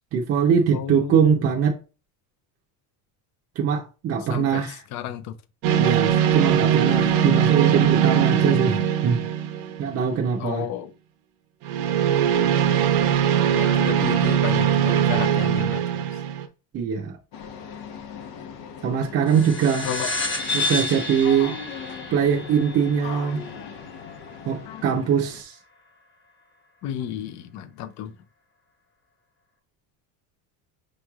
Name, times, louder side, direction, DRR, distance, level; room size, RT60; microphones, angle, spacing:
voice 1, 0.1-1.8 3.6-4.8 5.8-9.2 9.8-10.7 16.7-17.2 18.8-19.9 20.5-21.6 22.1-23.4 24.5-25.5, right 7 dB, 35° right, 0.6 m, -22 dB
voice 2, 0.7-1.4 4.3-5.3 6.9-7.0 10.4-10.9 13.5-16.2 19.8-20.1 23.6-23.7 24.7-24.8 26.8-28.1, left 10 dB, 45° left, 0.4 m, -32 dB
sound 1, 5.6-10.1 11.6-16.4, right 9 dB, 80° right, 0.8 m, -21 dB
sound 2, 17.3-25.4, left 6 dB, 75° left, 0.9 m, -39 dB
sound 3, 19.3-24.2, left 2 dB, 25° left, 1.2 m, -30 dB
6.2 x 3.1 x 2.3 m
cardioid pair, 165°, 41 cm